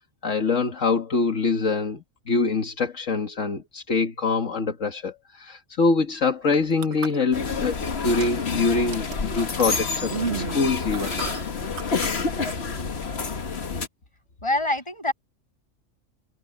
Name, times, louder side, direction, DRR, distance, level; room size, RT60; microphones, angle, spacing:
voice 1, 0.2-11.1, left 4 dB, 80° left, 2.1 m, -24 dB
sound 1, 6.4-7.7 8.1-8.5 8.9-12.1 12.4-12.5, right 7 dB, 60° right, 1.2 m, -34 dB
sound 2, 7.3-13.9, left 4 dB, 55° left, 1.7 m, -28 dB
voice 2, 14.4-15.1, left 1 dB, 25° left, 7.0 m, -25 dB
omnidirectional pair, 1.3 m